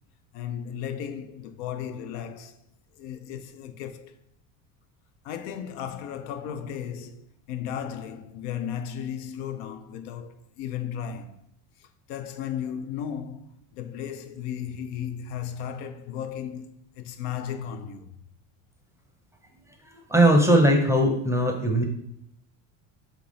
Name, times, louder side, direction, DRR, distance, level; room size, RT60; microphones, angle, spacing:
voice 1, 0.3-2.6 2.9-4.2 5.2-11.4 11.8-18.2, left 9 dB, 70° left, 0.5 m, -35 dB
voice 2, 19.8-21.8, right 1 dB, 5° right, 0.6 m, -20 dB
3.6 x 2.9 x 3.9 m
supercardioid pair, 90°, 42 cm